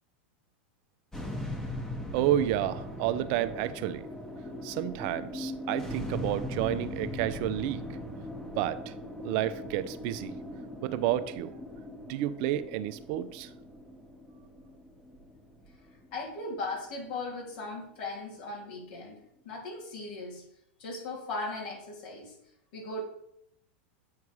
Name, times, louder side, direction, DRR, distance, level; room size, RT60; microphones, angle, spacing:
sound 1, 1.1-17.5, left 1 dB, 10° left, 1.3 m, -40 dB
voice 1, 2.1-4.1 4.6-7.8 8.6-8.9 9.2-10.3 10.8-11.5 12.1-13.5, right 12 dB, 55° right, 12 dB, 0.6 m, -30 dB
voice 2, 16.1-19.2 19.4-20.4 20.8-22.3 22.7-23.0, left 2 dB, 65° left, -2 dB, 3.2 m, -38 dB
8.3 x 4.7 x 4.8 m, 0.78 s
hypercardioid pair, 110°, 6 cm